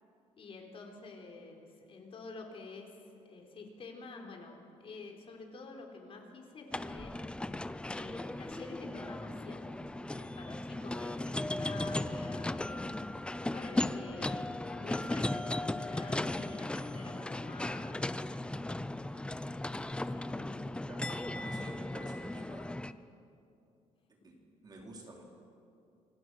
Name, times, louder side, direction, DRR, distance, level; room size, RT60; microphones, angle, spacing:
voice 1, 0.4-7.1 7.9-9.8 10.2-18.2 19.9-20.8 21.1-21.6 24.2-24.3, left 3 dB, 45° left, 2 dB, 4.0 m, -49 dB
sound 1, 6.7-22.9, left 1 dB, 10° left, 0.6 m, -37 dB
voice 2, 20.9-22.7 24.2-25.3, right 1 dB, 30° right, 0 dB, 3.9 m, -50 dB
28.5 x 25.0 x 6.3 m, 2.5 s
cardioid pair, 145°, 13 cm